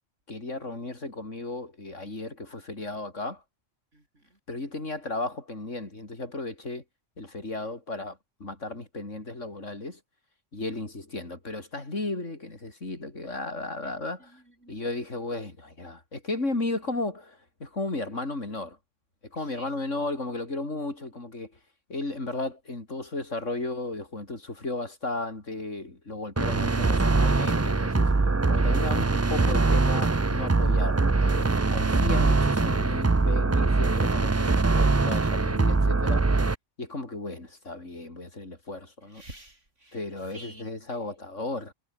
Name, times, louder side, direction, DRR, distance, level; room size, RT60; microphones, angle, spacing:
voice 1, 0.3-3.4 4.5-6.8 7.2-10.0 10.5-14.3 14.7-18.8 19.3-21.5 21.9-28.1 28.5-36.2 36.8-39.2 39.9-41.7, left 2 dB, 90° left, 5.0 m, -34 dB
voice 2, 3.9-4.4 13.8-13.9 14.2-14.9 19.4-19.7 39.0-40.0 40.3-40.7, right 1 dB, 80° right, 7.7 m, -50 dB
sound 1, 26.4-36.5, right 3 dB, 25° right, 0.3 m, -23 dB
omnidirectional pair, 1.2 m